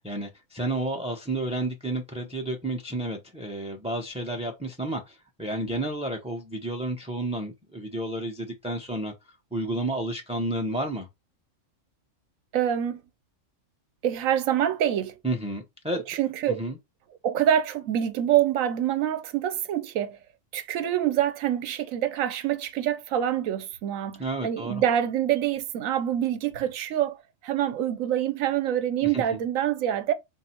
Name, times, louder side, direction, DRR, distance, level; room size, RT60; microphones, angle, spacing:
voice 1, 0.0-9.1 9.5-11.1 15.2-16.0 16.5-16.8 24.2-24.8 29.0-29.2, right 1 dB, 10° right, 0.4 m, -31 dB
voice 2, 12.5-13.0 14.0-15.1 16.1-16.6 17.2-20.2 20.5-27.2 27.4-30.1, right 10 dB, 90° right, 1.1 m, -26 dB
3.9 x 2.7 x 4.3 m
omnidirectional pair, 1.4 m